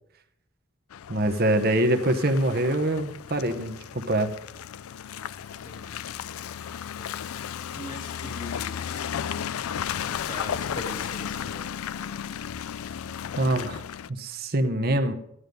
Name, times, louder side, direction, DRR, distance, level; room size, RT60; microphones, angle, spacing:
Car passing by / Engine, 0.9-14.1, left 8 dB, 90° left, 0.4 m, -34 dB
voice 1, 1.1-4.3 13.4-13.8 14.1-15.1, right 1 dB, 45° right, 7 dB, 0.9 m, -24 dB
voice 2, 5.6-5.9 7.0-7.1 7.7-8.9 10.0-11.7, left 1 dB, 40° left, 4 dB, 2.2 m, -40 dB
14.5 x 11.0 x 5.3 m, 0.78 s
head